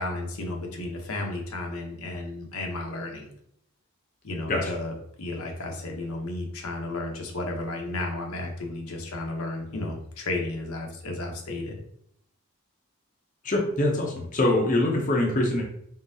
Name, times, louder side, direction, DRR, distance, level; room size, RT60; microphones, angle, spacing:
voice 1, 0.0-3.3 4.2-11.8, left 2 dB, 80° left, 1 dB, 0.9 m, -33 dB
voice 2, 13.4-15.6, left 1 dB, 35° left, 0 dB, 0.6 m, -24 dB
3.8 x 3.7 x 2.7 m, 0.70 s
head